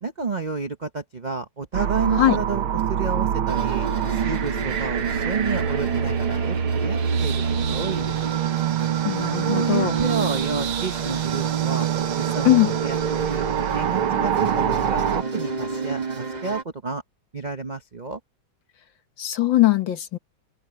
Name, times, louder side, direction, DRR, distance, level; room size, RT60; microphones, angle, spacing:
voice 1, 0.0-7.4 7.7-8.3 9.3-11.9 12.2-13.5 13.7-17.0 17.3-18.2, right 4 dB, 45° right, 0.5 m, -30 dB
sound 1, 1.7-15.2, right 9 dB, 85° right, 2.1 m, -25 dB
sound 2, 3.5-16.6, right 5 dB, 25° right, 1.1 m, -30 dB
voice 2, 9.0-10.0 12.5-12.8 19.2-20.2, left 14 dB, 65° left, 2.0 m, -20 dB
omnidirectional pair, 2.2 m